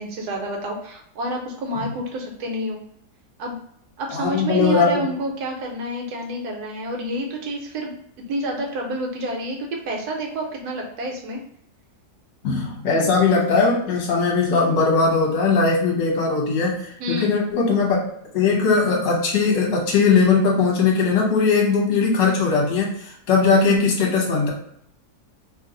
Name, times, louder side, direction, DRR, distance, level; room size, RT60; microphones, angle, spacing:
voice 1, 0.0-2.8 3.4-3.6 4.0-7.9 8.3-11.4 17.0-17.3, right 1 dB, 80° right, 1 dB, 1.3 m, -28 dB
voice 2, 4.1-5.1 12.4-16.8 17.1-18.0 18.3-24.5, left 4 dB, 55° left, -1 dB, 1.2 m, -19 dB
2.9 x 2.0 x 3.7 m, 0.71 s
omnidirectional pair, 1.7 m